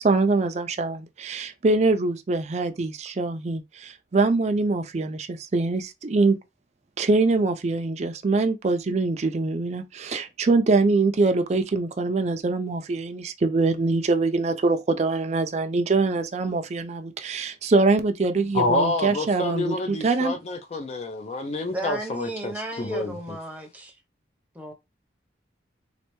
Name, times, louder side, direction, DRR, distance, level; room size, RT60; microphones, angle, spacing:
voice 1, 0.0-6.4 7.0-20.3, right 3 dB, 40° right, 0.4 m, -23 dB
voice 2, 18.5-22.5 22.8-23.2, left 2 dB, 35° left, 0.4 m, -27 dB
voice 3, 21.7-24.0 24.5-24.7, right 1 dB, 10° right, 0.7 m, -34 dB
3.2 x 2.6 x 3.0 m
head